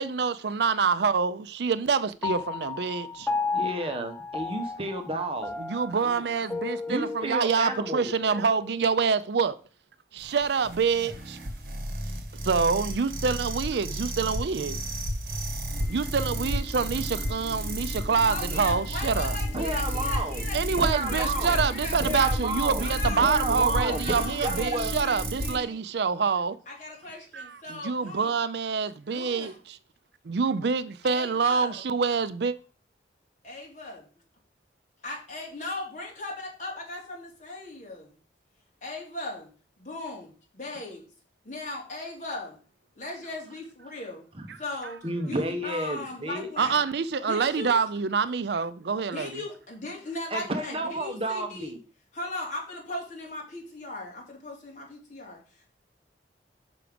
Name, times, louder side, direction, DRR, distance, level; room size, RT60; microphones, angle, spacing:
voice 1, 0.0-3.3 5.6-9.6 10.1-11.4 12.4-14.8 15.9-19.4 20.5-26.6 27.3-29.8 30.3-32.5 46.6-49.3, right 5 dB, 65° right, 0.5 m, -26 dB
Piano, 2.2-8.9, left 4 dB, 10° left, 0.6 m, -34 dB
voice 2, 3.5-5.6 6.0-6.2 6.9-8.1 19.5-20.4 20.8-21.6 22.0-22.9 23.2-24.9 44.4-44.5 45.0-46.5 50.3-51.8, right 2 dB, 30° right, 0.9 m, -31 dB
sound 1, 10.2-25.6, right 1 dB, 50° right, 1.6 m, -32 dB
sound 2, 15.7-25.6, left 4 dB, 65° left, 3.7 m, -42 dB
voice 3, 18.3-22.3 22.8-23.3 23.7-25.8 26.7-28.4 29.1-29.6 31.0-31.9 33.4-34.1 35.0-38.2 38.8-39.5 39.8-41.0 41.4-42.6 42.9-44.3 44.6-45.0 45.2-46.8 47.3-47.7 49.1-51.7 52.1-55.7, left 2 dB, 40° left, 2.7 m, -38 dB
6.3 x 5.9 x 5.1 m
head